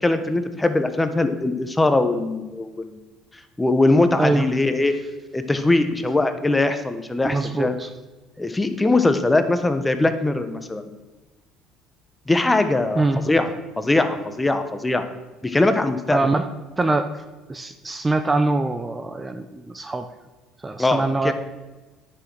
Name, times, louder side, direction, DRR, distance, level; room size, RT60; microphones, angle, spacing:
voice 1, 0.0-3.0 3.6-4.9 5.3-7.8 8.4-10.9 12.3-13.5 13.8-15.0 15.4-16.2 20.8-21.3, left 2 dB, 15° left, 9 dB, 1.1 m, -21 dB
voice 2, 7.2-7.9 13.0-13.2 16.1-16.4 16.8-17.1 17.5-20.0 20.6-21.3, right 2 dB, 20° right, 8 dB, 0.7 m, -23 dB
9.6 x 6.5 x 6.2 m, 1.2 s
supercardioid pair, 80°, 0 cm